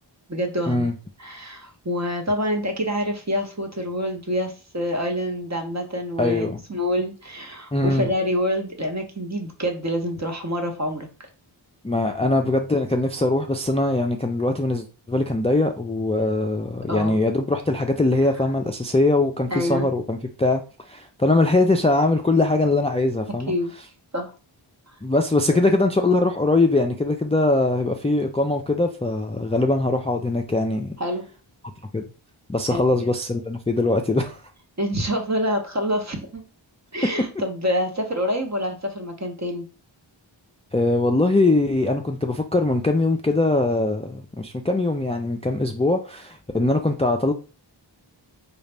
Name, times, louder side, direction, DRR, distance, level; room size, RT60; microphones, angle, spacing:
voice 1, 0.3-0.9 1.2-11.3 16.9-17.2 19.5-19.9 23.3-23.7 24.1-24.3 25.5-25.6 31.0-31.3 32.7-33.1 34.8-36.5 36.9-39.7, equal, 35° right, 1.0 m, -27 dB
voice 2, 6.2-6.6 7.7-8.1 11.8-23.5 25.0-30.9 31.9-32.0 32.5-34.4 40.7-47.3, left 2 dB, 15° left, 0.4 m, -22 dB
4.0 x 2.4 x 3.3 m
wide cardioid pair, 45°, 47 cm